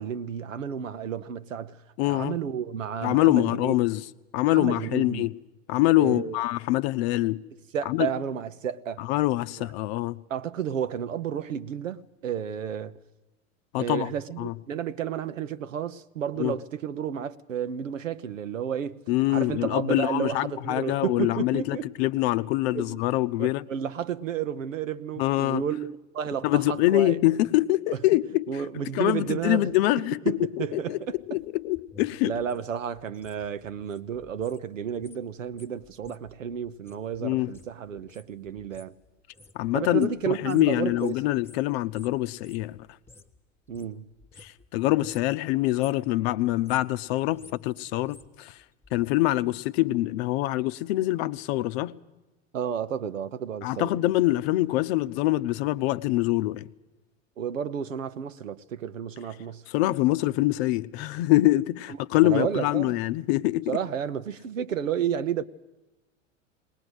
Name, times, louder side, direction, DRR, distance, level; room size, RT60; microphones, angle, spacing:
voice 1, 0.0-3.8 4.5-5.3 6.0-6.4 7.7-9.1 9.6-9.7 10.3-12.9 13.8-19.0 19.3-21.9 22.7-23.0 23.4-27.2 28.5-29.7 30.2-31.2 32.2-38.9 39.7-41.1 43.7-44.1 52.5-53.9 57.4-59.6 62.2-63.0 63.7-65.4, right 8 dB, 85° right, 0.9 m, -31 dB
voice 2, 2.0-2.4 3.0-4.1 4.3-5.3 5.7-7.4 7.9-8.1 9.0-10.2 13.7-14.1 14.4-14.5 16.4-16.5 19.1-23.7 25.2-25.6 26.4-28.6 28.9-32.3 37.2-37.5 39.5-42.8 44.4-48.6 48.9-52.0 53.6-56.6 59.7-63.8, left 17 dB, 55° left, 0.7 m, -25 dB
sound 1, 31.1-34.6 34.9-43.4 43.7-44.7 45.0-45.4 45.6-46.1 46.5-49.1 49.4-49.5, left 3 dB, 5° left, 1.1 m, -54 dB
20.0 x 19.0 x 8.0 m
hypercardioid pair, 90°, 38 cm